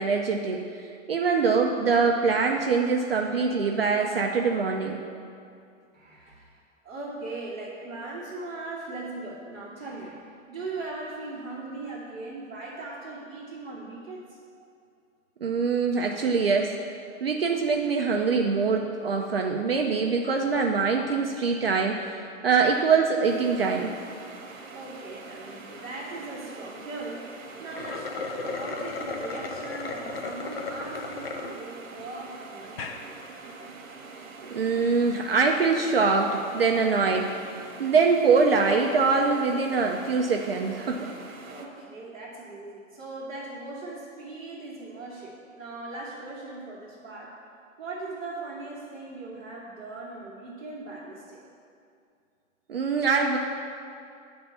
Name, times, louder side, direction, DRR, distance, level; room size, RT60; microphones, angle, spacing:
voice 1, 0.0-5.0 15.4-16.8 17.2-23.9 34.4-37.4 37.8-41.1 52.7-53.4, right 4 dB, 50° right, 0 dB, 0.4 m, -24 dB
voice 2, 5.9-6.5 6.8-14.4 24.7-33.0 41.5-47.3 47.8-51.4, right 2 dB, 5° left, -15 dB, 0.7 m, -39 dB
sound 1, 23.2-41.7, right 3 dB, 75° right, 1.1 m, -44 dB
sound 2, 27.6-31.5 32.0-32.1 32.6-33.0, left 3 dB, 45° left, 0.5 m, -35 dB
9.6 x 3.4 x 5.4 m, 2.4 s
hypercardioid pair, 175°, 40 cm